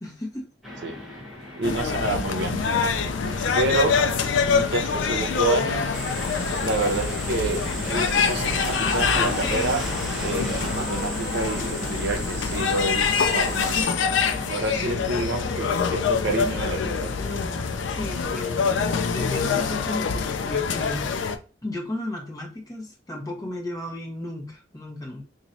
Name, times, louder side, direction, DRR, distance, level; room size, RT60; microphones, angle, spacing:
voice 1, 0.0-0.4 17.2-21.1 21.6-25.2, left 1 dB, 20° left, -2 dB, 1.3 m, -34 dB
Fixed-wing aircraft airplane, 0.6-18.6, left 1 dB, ahead, 1.1 m, -36 dB
sound 1, 1.6-21.4, left 5 dB, 90° left, 0.5 m, -25 dB
voice 2, 1.6-2.6 3.5-4.0 4.4-5.9 6.6-9.8 10.2-13.9 14.5-17.2, right 2 dB, 65° right, 5 dB, 0.8 m, -28 dB
sound 2, 5.9-13.8, right 2 dB, 30° right, 1.7 m, -36 dB
3.0 x 2.7 x 3.9 m, 0.36 s
head